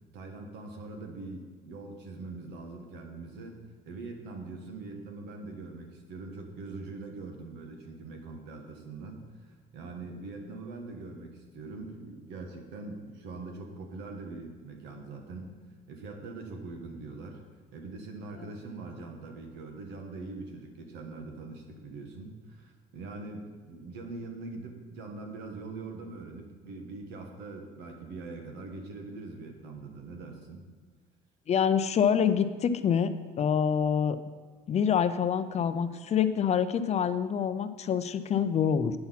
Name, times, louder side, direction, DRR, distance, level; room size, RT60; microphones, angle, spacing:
voice 1, 0.1-15.6 15.9-17.4 17.7-30.6, right 3 dB, 90° right, 3 dB, 1.4 m, -42 dB
voice 2, 31.5-34.2 34.7-38.9, left 7 dB, 40° left, 11 dB, 0.5 m, -26 dB
8.7 x 5.8 x 5.7 m, 1.4 s
cardioid pair, 110°, 17 cm